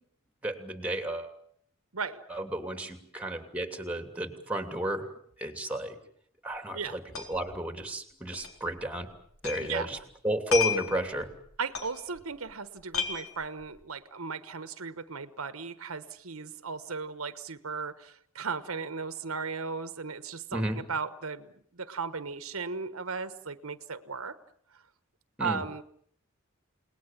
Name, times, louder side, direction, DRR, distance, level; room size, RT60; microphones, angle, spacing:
voice 1, 0.4-1.3 2.3-5.1 5.4-6.0 6.4-7.0 7.3-9.1 9.4-10.0 10.2-11.3 20.5-20.8 25.4-25.6, right 1 dB, 5° right, 7 dB, 2.8 m, -32 dB
sound 1, 6.5-6.6 6.8-7.5 7.8-7.9 8.3-9.7 10.0-12.5 12.8-13.8, left 7 dB, 90° left, 4.2 m, -34 dB
voice 2, 11.6-24.4 25.4-25.8, right 5 dB, 80° right, 12 dB, 1.3 m, -36 dB
29.5 x 19.5 x 7.4 m, 0.64 s
head